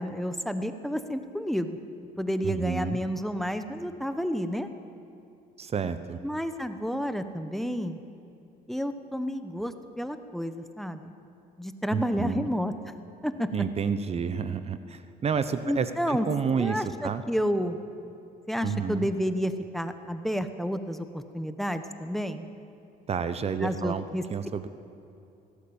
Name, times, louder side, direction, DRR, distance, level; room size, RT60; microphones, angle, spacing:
voice 1, 0.0-1.8 2.2-4.7 6.2-8.0 8.7-11.1 11.6-12.7 13.2-13.5 15.7-16.3 16.6-17.8 18.5-22.5 23.6-24.2, equal, ahead, 9 dB, 1.1 m, -30 dB
voice 2, 2.4-3.0 5.6-6.2 11.9-12.5 13.5-17.2 18.6-19.1 23.1-24.0 24.3-24.7, right 6 dB, 35° right, 11 dB, 1.0 m, -30 dB
19.0 x 16.5 x 8.8 m, 2.8 s
cardioid pair, 110°, 17 cm